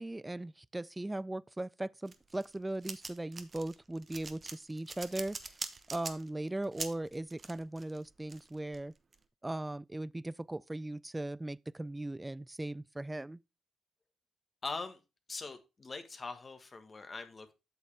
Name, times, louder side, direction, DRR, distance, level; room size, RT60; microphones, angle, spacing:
voice 1, 0.0-5.4 5.9-8.9 9.4-13.4, right 1 dB, 15° right, 0.3 m, -38 dB
sound 1, 2.1-9.2, right 4 dB, 40° right, 1.0 m, -44 dB
voice 2, 14.6-15.0 15.3-17.5, left 3 dB, 35° left, 1.4 m, -42 dB
8.3 x 6.6 x 3.4 m
supercardioid pair, 65°, 0 cm